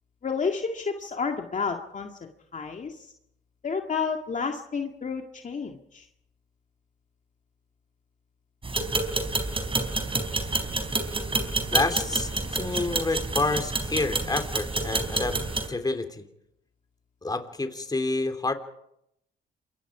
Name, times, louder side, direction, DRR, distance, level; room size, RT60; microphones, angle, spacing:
voice 1, 0.2-3.1 3.6-6.1, left 5 dB, 40° left, 3 dB, 2.1 m, -31 dB
sound 1, 8.6-15.7, right 3 dB, 25° right, 4.4 m, -28 dB
voice 2, 11.7-15.4 15.7-16.2 17.2-18.5, left 2 dB, 20° left, 7 dB, 3.3 m, -28 dB
28.0 x 23.5 x 5.0 m, 0.77 s
cardioid pair, 90°, 20 cm